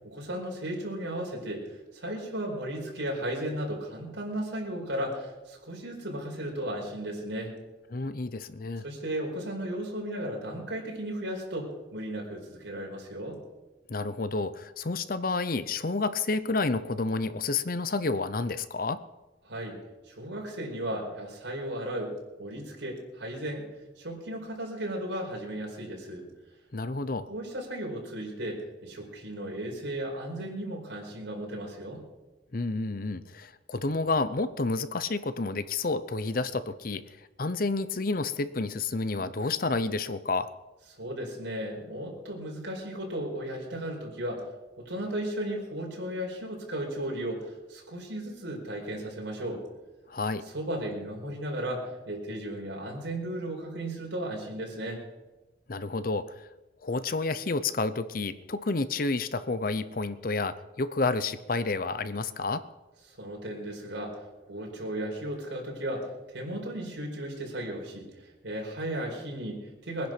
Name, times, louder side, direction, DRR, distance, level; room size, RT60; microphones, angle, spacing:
voice 1, 0.0-7.6 8.8-13.4 19.4-19.8 20.1-22.1 22.4-23.7 24.0-26.3 27.3-32.0 41.0-44.5 44.8-49.6 50.5-55.0 63.1-70.1, right 1 dB, 80° right, -1 dB, 4.8 m, -35 dB
voice 2, 7.9-8.8 13.9-19.0 26.7-27.3 32.5-40.5 50.1-50.4 55.7-56.5 56.8-62.6, left 3 dB, 50° left, 13 dB, 0.7 m, -30 dB
21.5 x 10.5 x 6.0 m, 1.1 s
head